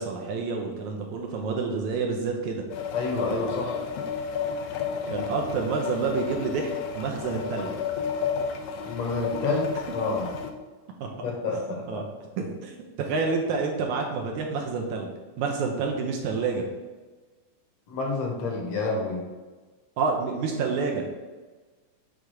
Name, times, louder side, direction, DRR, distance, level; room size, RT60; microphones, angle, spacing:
voice 1, 0.0-2.6 4.6-4.7 5.1-6.7 7.0-7.7 11.0-11.1 11.9-12.0 12.4-15.1 15.4-16.6 20.0-21.0, right 4 dB, 75° right, 1 dB, 2.0 m, -28 dB
sound 1, 2.7-10.5, left 6 dB, 80° left, 1.4 m, -32 dB
voice 2, 2.9-3.8 8.8-10.3 11.2-12.0 17.9-19.2, left 3 dB, 60° left, 0 dB, 1.9 m, -29 dB
6.5 x 3.5 x 6.2 m, 1.3 s
omnidirectional pair, 3.8 m